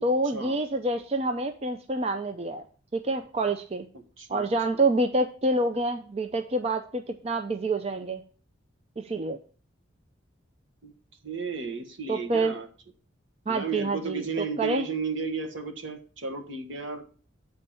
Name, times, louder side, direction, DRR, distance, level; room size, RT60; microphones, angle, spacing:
voice 1, 0.0-2.6 2.9-3.8 4.3-8.2 9.0-9.4 12.1-12.5 13.5-14.9, right 2 dB, 30° right, 6 dB, 0.5 m, -27 dB
voice 2, 4.2-4.5 4.7-4.9 10.8-10.9 11.2-12.7 13.5-17.0, right 4 dB, 70° right, 5 dB, 1.4 m, -33 dB
8.6 x 4.4 x 6.8 m, 0.41 s
head